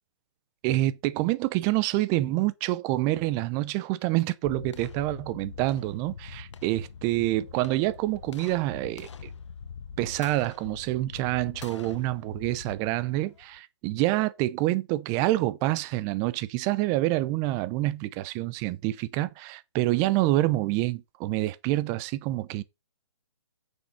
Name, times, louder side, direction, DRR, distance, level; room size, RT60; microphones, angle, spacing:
voice 1, 0.6-9.1 10.0-22.6, right 17 dB, 20° right, 0.6 m, -27 dB
sound 1, 4.4-13.6, left 6 dB, 75° left, 1.1 m, -44 dB
9.5 x 6.5 x 4.2 m
hypercardioid pair, 150°, 15 cm